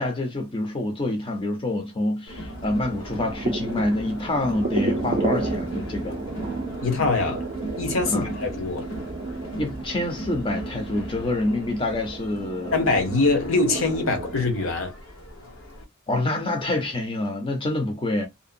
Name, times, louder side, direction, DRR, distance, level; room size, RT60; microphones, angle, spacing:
voice 1, 0.0-6.2 8.1-8.3 9.6-12.9 16.1-18.3, left 2 dB, 25° left, 0.5 m, -27 dB
Crowd, 2.3-15.8, equal, 90° left, 1.1 m, -38 dB
sound 1, 2.5-14.5, right 2 dB, 40° right, 0.5 m, -32 dB
voice 2, 6.8-7.4 7.8-8.9 12.7-14.9, left 3 dB, 70° left, 0.9 m, -23 dB
2.7 x 2.1 x 2.5 m
head